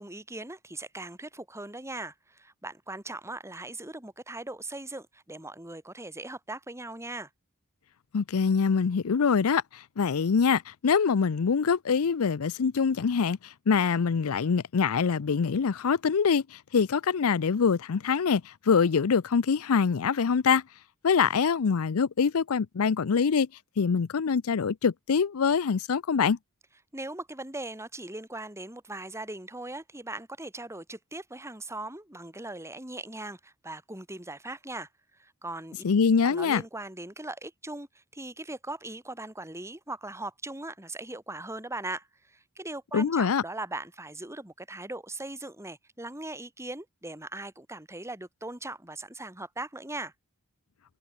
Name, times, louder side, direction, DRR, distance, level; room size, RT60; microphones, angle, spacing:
voice 1, 0.0-7.3 26.9-35.8 36.2-50.1, right 2 dB, 15° right, 3.4 m, -39 dB
voice 2, 8.1-20.6 21.0-23.5 23.8-26.4 35.8-36.6 42.9-43.4, left 6 dB, 70° left, 0.5 m, -24 dB
head